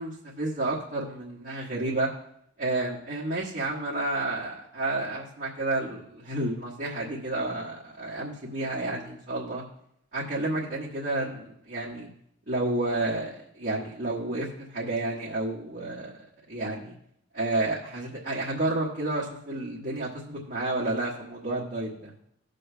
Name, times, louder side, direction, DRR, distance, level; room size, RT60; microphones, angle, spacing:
voice 1, 0.0-2.1 2.6-9.6 10.1-12.1 12.5-16.1 16.5-16.9 17.3-22.1, right 2 dB, 55° right, -7 dB, 1.3 m, -30 dB
19.0 x 6.5 x 2.2 m, 0.72 s
head